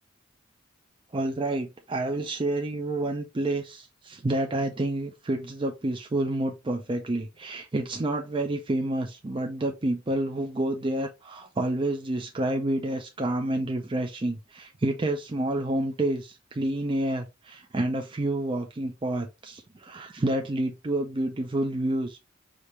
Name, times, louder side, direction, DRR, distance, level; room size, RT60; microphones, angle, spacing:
voice 1, 1.1-22.2, right 1 dB, 25° right, 0.5 m, -29 dB
5.0 x 2.8 x 3.1 m
head